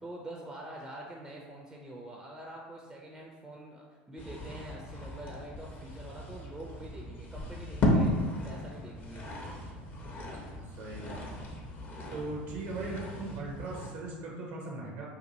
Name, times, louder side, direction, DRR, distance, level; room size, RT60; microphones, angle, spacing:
voice 1, 0.0-9.7, right 1 dB, 10° right, -2 dB, 0.4 m, -46 dB
sound 1, 4.2-13.9, left 1 dB, 35° left, 0.6 m, -35 dB
voice 2, 10.6-11.2 12.1-15.1, right 3 dB, 65° right, -2 dB, 0.5 m, -39 dB
2.6 x 2.4 x 2.6 m, 1.4 s
hypercardioid pair, 80°, 5 cm